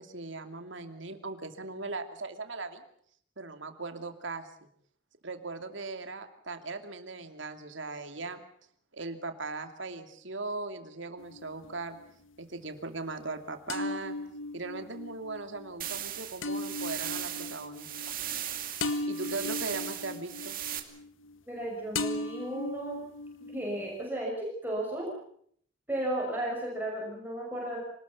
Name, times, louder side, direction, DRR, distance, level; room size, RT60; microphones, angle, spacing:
voice 1, 0.0-2.8 3.4-4.5 5.2-8.4 8.9-12.0 12.4-14.2 14.5-18.1 19.1-20.6, right 3 dB, 65° right, 7 dB, 2.7 m, -39 dB
sound 1, 11.2-12.1 13.7-21.6 21.9-24.0, left 2 dB, 80° left, 1.8 m, -37 dB
sound 2, 15.8-20.8, right 11 dB, 45° right, 2.5 m, -37 dB
voice 2, 21.5-23.0 23.5-25.1 25.9-27.8, right 1 dB, 10° right, -2 dB, 6.3 m, -34 dB
26.0 x 19.5 x 7.1 m, 0.62 s
head